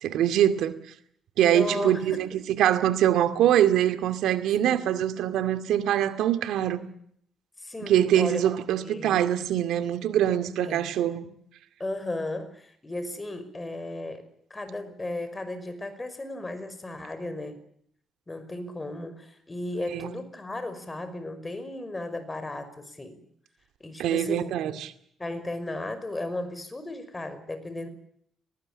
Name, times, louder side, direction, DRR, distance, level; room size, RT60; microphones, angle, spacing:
voice 1, 0.0-0.8 1.4-2.3 2.6-6.8 7.8-11.3 19.9-20.1 24.0-24.9, right 11 dB, 85° right, 2.2 m, -23 dB
voice 2, 1.4-2.4 4.6-4.8 7.6-8.4 8.8-9.2 10.6-10.9 11.8-17.6 18.3-23.2 23.8-24.5 25.2-27.9, left 2 dB, 20° left, 5.6 m, -35 dB
23.5 x 19.5 x 8.7 m
cardioid pair, 90°, 0 cm